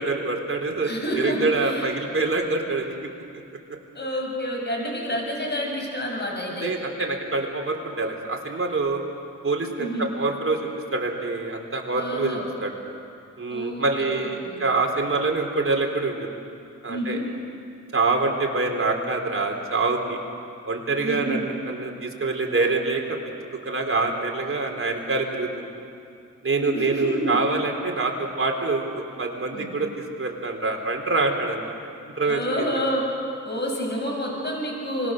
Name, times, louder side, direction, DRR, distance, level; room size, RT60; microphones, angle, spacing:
voice 1, 0.0-2.9 6.6-9.0 9.4-12.7 13.4-16.2 16.8-17.2 17.9-20.2 20.7-23.2 23.7-25.7 26.4-28.9 29.2-29.9 30.2-31.7 32.2-32.8, right 3 dB, 40° right, 1 dB, 3.9 m, -25 dB
voice 2, 0.8-1.9 3.9-6.7 9.8-10.1 11.9-12.5 13.5-14.6 16.9-17.2 21.0-21.4 26.6-27.4 29.5-29.7 32.2-33.0 33.4-35.1, equal, 35° left, 0 dB, 6.7 m, -29 dB
25.5 x 21.0 x 6.7 m, 2.6 s
cardioid pair, 60°, 32 cm